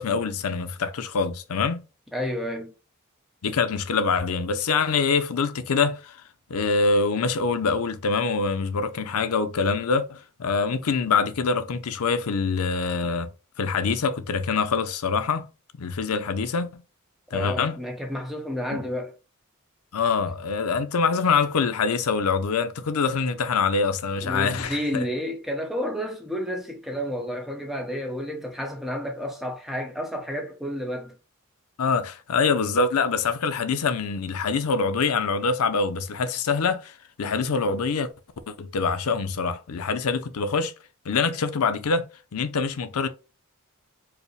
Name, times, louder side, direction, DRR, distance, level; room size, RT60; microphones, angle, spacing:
voice 1, 0.0-1.8 3.4-6.2 6.5-13.3 13.6-15.5 15.7-16.8 17.3-17.8 18.7-18.8 19.9-25.0 31.8-38.1 38.5-40.7 41.1-42.1 42.3-43.1, left 4 dB, 85° left, 0.5 m, -25 dB
voice 2, 2.1-2.7 17.3-19.1 24.2-31.1, equal, ahead, 0.8 m, -31 dB
4.7 x 2.1 x 3.2 m
head